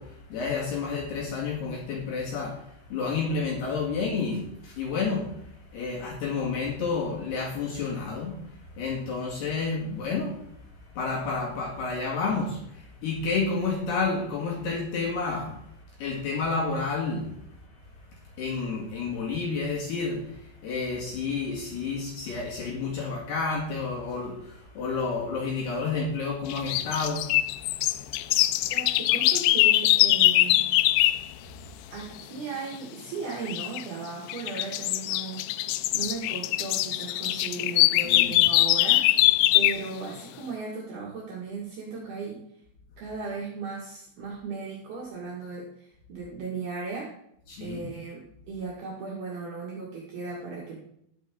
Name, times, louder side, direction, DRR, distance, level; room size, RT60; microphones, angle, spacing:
voice 1, 0.0-10.4 11.0-15.5 16.0-17.3 18.4-27.4 37.9-38.4 47.5-47.9, left 4 dB, 60° left, -3 dB, 3.9 m, -30 dB
sound 1, 26.5-31.2 33.5-33.8 34.3-39.9, left 16 dB, 85° left, 2.9 m, -22 dB
voice 2, 28.7-30.6 31.9-35.5 35.9-39.1 39.5-42.4 43.0-47.1 47.6-50.8, right 4 dB, 60° right, -4 dB, 3.6 m, -36 dB
13.0 x 10.0 x 3.8 m, 0.74 s
omnidirectional pair, 5.5 m